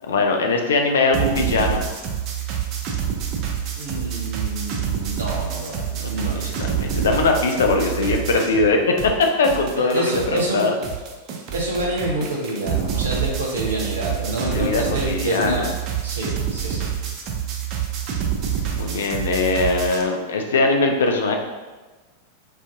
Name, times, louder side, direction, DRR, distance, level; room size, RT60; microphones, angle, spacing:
voice 1, 0.0-1.8 5.9-10.7 14.5-15.7 18.7-21.4, left 3 dB, 65° left, 3 dB, 0.4 m, -21 dB
sound 1, 1.1-8.7 9.0-20.0, right 8 dB, 35° right, 0.4 m, -27 dB
voice 2, 3.8-6.4 9.7-10.7 11.5-15.6 16.0-16.9, right 1 dB, 70° right, -2 dB, 0.7 m, -27 dB
2.5 x 2.3 x 3.7 m, 1.2 s
figure-of-eight pair, 90°, 0 cm